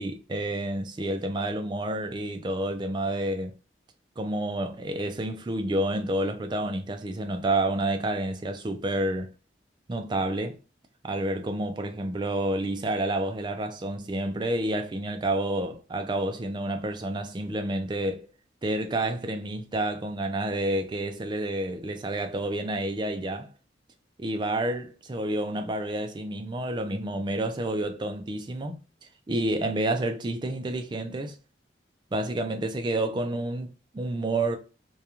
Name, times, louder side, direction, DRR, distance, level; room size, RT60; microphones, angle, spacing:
voice 1, 0.0-3.5 4.2-9.3 9.9-10.6 11.0-18.3 18.6-23.5 24.2-28.8 29.3-31.4 32.1-34.6, right 1 dB, 25° right, 0.3 m, -29 dB
2.4 x 2.3 x 2.8 m
head